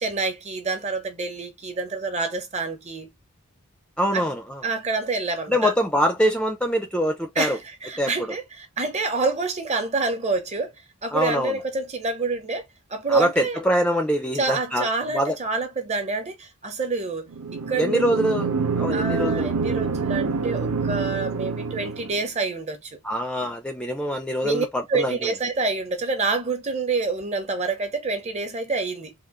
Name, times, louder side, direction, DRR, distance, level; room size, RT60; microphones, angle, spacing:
voice 1, 0.0-3.1 4.1-4.2 4.6-5.7 7.4-10.7 11.0-12.6 12.9-13.6 14.3-17.3 17.7-18.1 18.9-23.0 24.4-29.1, right 3 dB, 30° right, 0.8 m, -27 dB
voice 2, 4.0-4.6 5.5-7.6 8.0-8.1 11.1-11.5 13.1-15.4 17.8-19.5 23.0-25.3, equal, 5° left, 0.5 m, -24 dB
sound 1, 17.3-22.3, right 4 dB, 85° right, 0.6 m, -26 dB
3.7 x 2.4 x 3.6 m
head